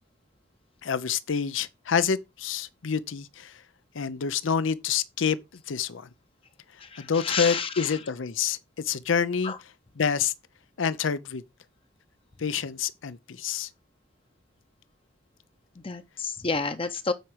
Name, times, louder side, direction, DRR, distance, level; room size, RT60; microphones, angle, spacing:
voice 1, 0.8-3.6 3.9-5.4 5.7-6.1 7.0-9.5 10.0-10.3 10.8-11.4 12.4-13.7, left 6 dB, 90° left, 0.6 m, -27 dB
voice 2, 6.8-8.0 9.4-9.6 15.8-17.1, left 4 dB, 30° left, 0.7 m, -30 dB
9.2 x 4.9 x 4.5 m
head